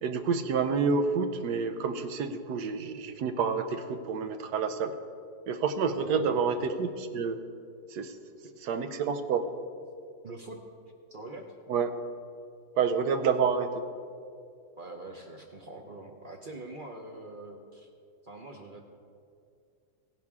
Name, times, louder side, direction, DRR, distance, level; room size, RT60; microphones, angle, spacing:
voice 1, 0.0-4.9 5.5-7.4 7.9-8.1 8.6-9.5 11.7-12.0 12.8-13.7, right 5 dB, 85° right, 9 dB, 1.3 m, -28 dB
voice 2, 6.0-6.5 10.2-10.6 11.1-11.5 13.2-13.4 14.8-17.9 18.2-18.9, right 2 dB, 45° right, 2 dB, 0.7 m, -44 dB
16.0 x 10.5 x 3.6 m, 2.3 s
omnidirectional pair, 1.7 m